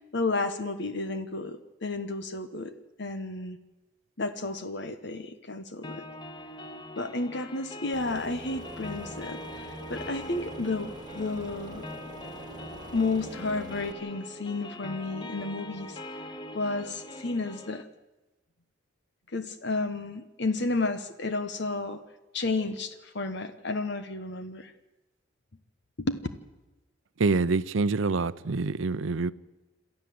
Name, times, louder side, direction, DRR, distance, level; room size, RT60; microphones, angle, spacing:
voice 1, 0.0-2.7 3.0-3.6 4.2-6.0 7.0-11.9 12.9-16.0 16.5-17.9 19.3-22.0 22.3-24.7 26.0-26.2, left 3 dB, 60° left, 1.1 m, -32 dB
sound 1, 5.8-17.8, left 1 dB, 25° left, 0.9 m, -42 dB
Aircraft, 7.9-13.9, right 1 dB, 20° right, 2.1 m, -44 dB
voice 2, 27.2-29.3, right 3 dB, 75° right, 0.6 m, -26 dB
27.5 x 13.5 x 7.7 m
head